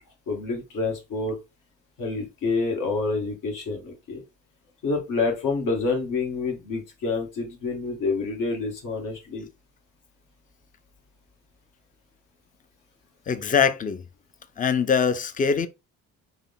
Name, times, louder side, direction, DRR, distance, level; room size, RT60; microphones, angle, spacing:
voice 1, 0.3-1.4 2.0-4.2 4.8-9.5, left 3 dB, 70° left, 1.5 m, -28 dB
voice 2, 13.3-14.0 14.6-15.7, left 6 dB, 25° left, 0.5 m, -22 dB
3.7 x 2.1 x 3.6 m
supercardioid pair, 75°, 33 cm